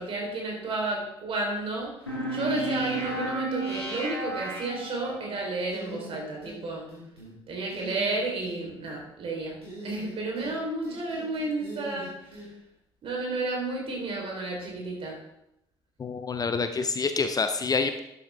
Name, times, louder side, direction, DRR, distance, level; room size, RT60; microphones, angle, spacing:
voice 1, 0.0-1.9 2.3-6.8 7.5-9.5 9.8-12.5 13.0-15.1, right 2 dB, 45° right, 0 dB, 3.6 m, -32 dB
sound 1, 2.1-5.3, right 1 dB, 85° left, 1.7 m, -32 dB
sound 2, 5.7-6.6 6.9-7.3 7.7-8.6 9.6-10.5 10.8-12.5, equal, 80° right, 3.6 m, -42 dB
voice 2, 16.0-18.0, left 4 dB, 30° left, 9 dB, 0.7 m, -27 dB
12.0 x 8.3 x 3.4 m, 0.81 s
figure-of-eight pair, 50°, 13 cm